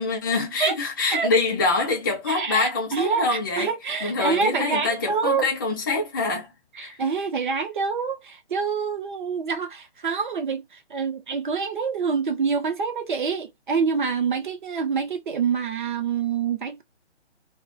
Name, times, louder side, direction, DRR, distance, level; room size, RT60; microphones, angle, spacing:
voice 1, 0.0-3.7 4.0-6.5 6.8-7.0, left 3 dB, 20° left, 0.5 m, -25 dB
voice 2, 2.3-5.5 6.7-16.8, right 5 dB, 45° right, 0.6 m, -26 dB
2.3 x 2.1 x 2.5 m
figure-of-eight pair, 150°, 34 cm